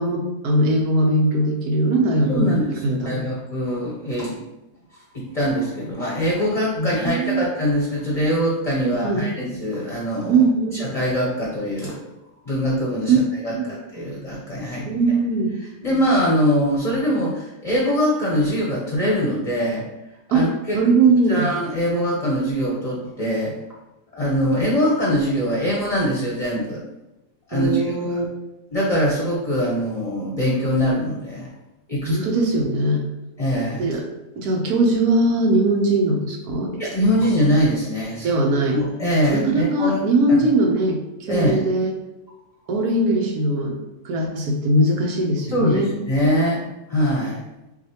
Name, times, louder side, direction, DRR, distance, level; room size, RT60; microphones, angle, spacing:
voice 1, 0.0-3.2 6.8-7.4 8.8-9.3 10.3-10.9 13.1-13.2 13.4-13.8 14.8-15.5 20.3-20.5 20.7-21.5 27.5-28.2 32.1-33.1 33.8-34.1 34.4-36.8 38.2-38.8 39.3-41.0 41.3-41.9 42.7-43.8 44.0-45.9, right 2 dB, 90° right, 1 dB, 1.3 m, -20 dB
voice 2, 2.3-4.4 5.1-10.4 10.8-12.1 12.4-13.1 13.4-14.9 15.8-19.8 20.3-20.8 21.3-23.5 24.1-26.8 27.5-28.2 28.7-31.5 31.9-32.2 33.4-33.9 36.8-38.3 38.7-40.0 41.3-41.6 45.5-47.4, equal, 30° left, -4 dB, 0.8 m, -23 dB
6.4 x 2.5 x 2.9 m, 0.96 s
omnidirectional pair, 1.5 m